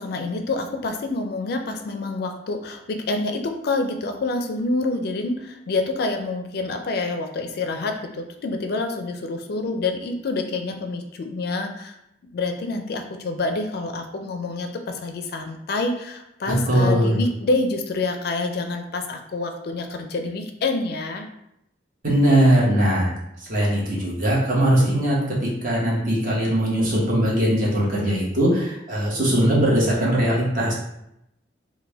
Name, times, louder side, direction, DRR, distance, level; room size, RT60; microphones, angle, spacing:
voice 1, 0.0-12.0 12.3-21.3, left 3 dB, 60° left, 6 dB, 0.4 m, -27 dB
voice 2, 16.7-17.2 22.0-23.1 23.4-25.3 25.6-30.7, right 1 dB, 50° right, -5 dB, 1.1 m, -20 dB
3.3 x 2.2 x 3.3 m, 0.81 s
head